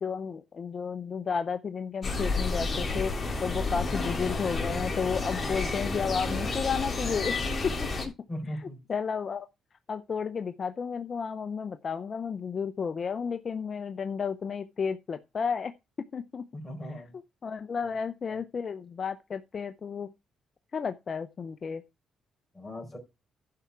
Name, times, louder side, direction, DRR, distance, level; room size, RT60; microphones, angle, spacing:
voice 1, 0.0-3.1 3.4-7.3 7.8-8.1 8.6-9.5 9.9-15.7 16.1-16.4 17.4-20.1 20.7-21.8, left 6 dB, 45° left, 0.7 m, -32 dB
sound 1, 2.0-8.1, left 3 dB, 25° left, 3.2 m, -30 dB
voice 2, 8.3-8.8 16.5-17.2 18.3-18.4 22.5-23.0, equal, 10° left, 4.4 m, -38 dB
11.5 x 5.7 x 4.7 m
cardioid pair, 90°, 0 cm